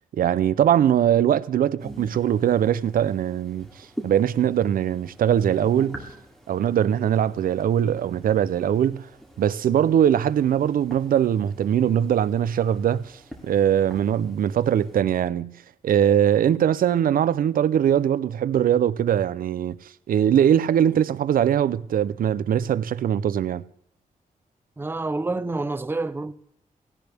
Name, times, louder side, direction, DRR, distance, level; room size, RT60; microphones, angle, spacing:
voice 1, 0.1-3.7 4.0-6.0 6.5-9.1 9.4-13.1 13.4-15.5 15.8-19.8 20.1-23.6, right 9 dB, 75° right, 0.5 m, -21 dB
sound 1, 1.8-15.0, right 1 dB, ahead, 2.7 m, -45 dB
voice 2, 24.8-26.3, right 2 dB, 15° right, 0.6 m, -28 dB
17.0 x 17.0 x 3.4 m
wide cardioid pair, 140°, 15 cm